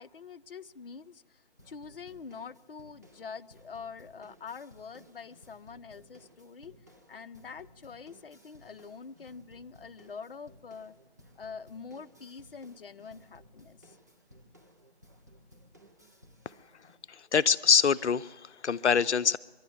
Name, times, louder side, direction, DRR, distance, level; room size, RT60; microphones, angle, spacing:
voice 1, 0.0-6.8 7.1-10.9 11.3-14.0, left 5 dB, 55° left, 11 dB, 0.8 m, -45 dB
sound 1, 1.6-16.9, equal, 15° right, 0.6 m, -58 dB
voice 2, 17.1-19.4, left 6 dB, 90° left, 17 dB, 0.6 m, -25 dB
23.0 x 11.5 x 10.0 m, 1.3 s
figure-of-eight pair, 165°, 33 cm